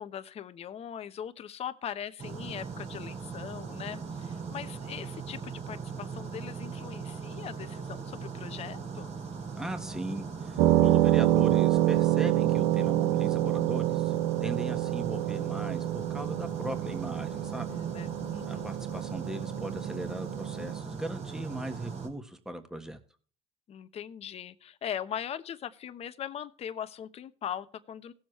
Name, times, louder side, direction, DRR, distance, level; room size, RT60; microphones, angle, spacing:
voice 1, 0.0-9.2 17.6-18.7 23.7-28.1, left 9 dB, 45° left, 11 dB, 1.0 m, -40 dB
sound 1, 2.2-22.1, right 5 dB, 50° right, 3.1 m, -39 dB
voice 2, 9.5-17.7 18.5-23.0, right 1 dB, 5° right, 7 dB, 1.5 m, -38 dB
sound 2, 10.6-20.8, right 15 dB, 80° right, 0.6 m, -27 dB
17.5 x 7.3 x 3.2 m, 0.42 s
supercardioid pair, 95°, 15 cm